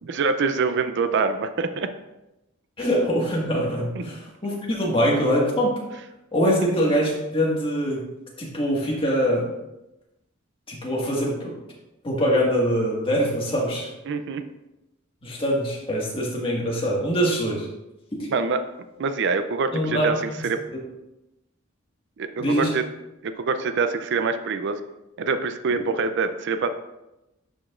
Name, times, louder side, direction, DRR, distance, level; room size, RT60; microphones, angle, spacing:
voice 1, 0.0-1.9 4.0-4.2 14.1-14.4 18.3-18.6 19.0-20.2 20.4-20.6 22.2-22.8 23.2-24.8 25.2-26.8, right 4 dB, 60° right, 9 dB, 0.4 m, -25 dB
voice 2, 2.8-5.7 6.3-8.0 8.4-9.5 10.7-11.5 12.0-13.9 15.2-17.7 19.7-20.1 22.4-22.7, equal, 25° left, -2 dB, 1.6 m, -23 dB
11.5 x 5.0 x 2.5 m, 0.95 s
head